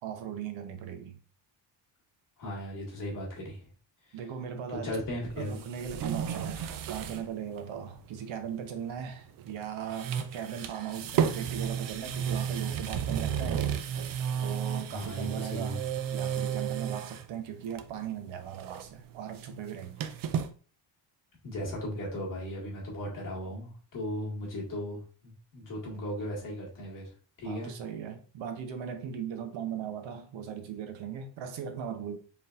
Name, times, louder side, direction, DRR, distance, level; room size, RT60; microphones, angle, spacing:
voice 1, 0.0-1.2 4.1-4.9 5.4-13.7 14.4-15.8 16.1-20.1 27.4-32.2, right 8 dB, 90° right, 0.9 m, -38 dB
voice 2, 2.4-3.7 4.0-4.2 4.7-5.6 14.9-15.8 21.4-27.1 27.4-27.7, equal, 45° left, 1.8 m, -37 dB
sound 1, 5.3-7.3 7.6-7.7 9.4-9.6 9.9-17.3 17.7-18.1 18.4-20.5, right 8 dB, 50° right, 0.5 m, -33 dB
4.2 x 3.7 x 2.4 m
cardioid pair, 160°, 44 cm